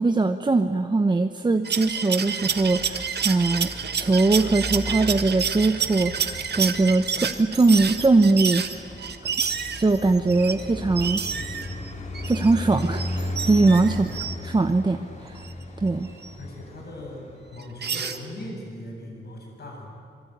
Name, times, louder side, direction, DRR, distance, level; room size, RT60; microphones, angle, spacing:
voice 1, 0.0-8.6 9.2-9.3 9.8-11.2 12.3-15.5 15.8-16.1, right 3 dB, 25° right, 7 dB, 0.9 m, -21 dB
sound 1, 1.6-10.6 11.0-14.4 15.4-15.5 16.2-16.3 17.6-18.2, right 6 dB, 60° right, 1.6 m, -29 dB
Traffic noise roadway noise, 2.4-17.9, left 1 dB, 35° left, 3.3 m, -36 dB
voice 2, 16.4-17.2 17.5-19.9, left 1 dB, 55° left, 0 dB, 7.9 m, -39 dB
26.0 x 23.0 x 9.4 m, 2.5 s
wide cardioid pair, 130°, 19 cm